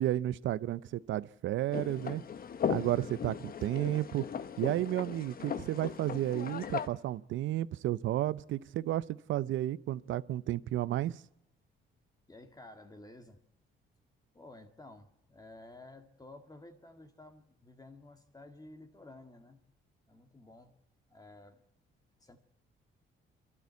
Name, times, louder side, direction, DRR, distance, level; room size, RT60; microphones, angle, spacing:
voice 1, 0.0-2.2 2.7-4.3 4.6-11.2, right 13 dB, 75° right, 0.6 m, -32 dB
sound 1, 1.7-6.9, left 7 dB, 45° left, 1.0 m, -37 dB
voice 2, 12.3-13.4 14.3-19.6 20.1-20.8 21.1-21.6 22.2-22.4, left 2 dB, 20° left, 1.9 m, -53 dB
28.0 x 12.5 x 8.1 m
cardioid pair, 90°, 20 cm